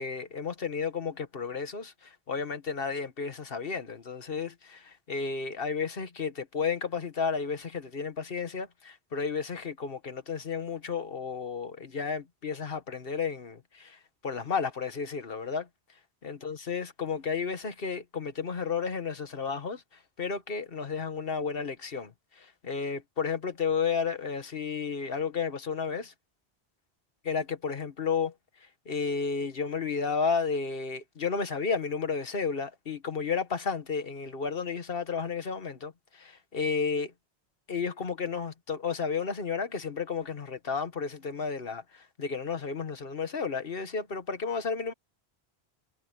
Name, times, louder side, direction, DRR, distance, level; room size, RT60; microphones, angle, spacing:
voice 1, 0.0-4.8 5.1-14.0 14.2-15.7 16.2-19.8 20.2-22.1 22.4-26.1 27.2-28.3 28.9-37.1 37.7-44.9, left 5 dB, 60° left, 1.6 m, -32 dB
omnidirectional pair, 1.1 m